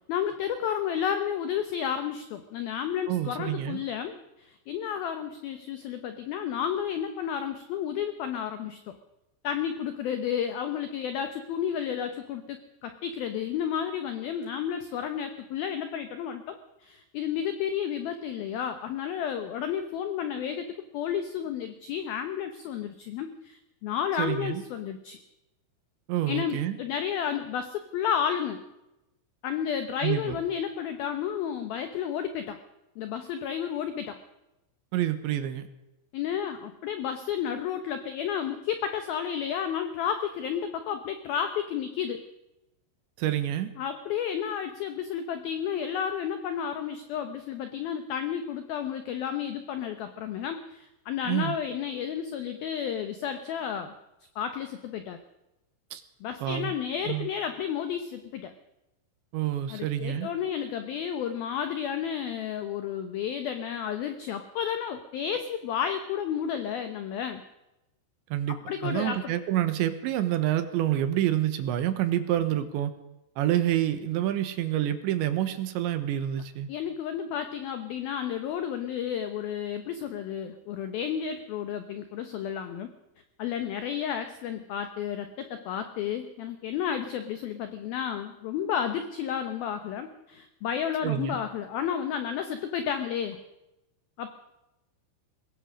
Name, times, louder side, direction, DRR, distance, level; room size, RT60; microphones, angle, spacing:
voice 1, 0.1-9.0 9.4-25.2 26.3-28.6 29.4-32.6 33.0-34.2 36.1-42.2 43.8-53.9 54.4-55.2 56.2-58.5 59.7-67.4 68.5-69.3 76.7-82.9 83.4-93.4 94.2-94.3, left 8 dB, 90° left, 8 dB, 2.1 m, -32 dB
voice 2, 3.1-3.8 24.2-24.6 26.1-26.8 30.0-30.4 34.9-35.6 43.2-43.7 51.3-51.6 55.9-56.0 56.4-56.7 57.1-57.3 59.3-60.3 68.3-72.9 73.4-76.7 91.0-91.4, right 12 dB, 75° right, 10 dB, 3.2 m, -28 dB
22.0 x 19.0 x 6.4 m, 0.94 s
omnidirectional pair, 5.8 m